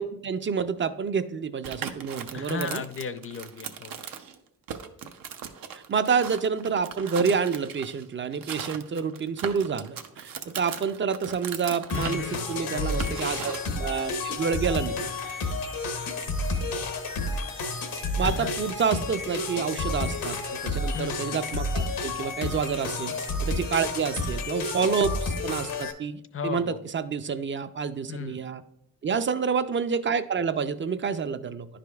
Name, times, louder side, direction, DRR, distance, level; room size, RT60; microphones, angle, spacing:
voice 1, 0.0-2.8 5.7-12.2 12.5-15.4 18.2-20.4 20.6-23.2 23.4-28.6 29.0-31.7, right 6 dB, 35° right, 12 dB, 0.4 m, -28 dB
sound 1, 1.6-4.4 4.7-8.0 8.3-13.7, right 7 dB, 75° right, 0.6 m, -38 dB
voice 2, 2.3-4.0 11.9-12.5 12.7-13.0 18.2-18.6 20.9-21.2 26.3-26.8 28.1-28.4, left 6 dB, 40° left, 11 dB, 0.5 m, -35 dB
sound 2, 11.9-25.9, left 3 dB, 80° left, 0.9 m, -30 dB
10.5 x 5.0 x 2.3 m, 0.80 s
cardioid pair, 65°, 34 cm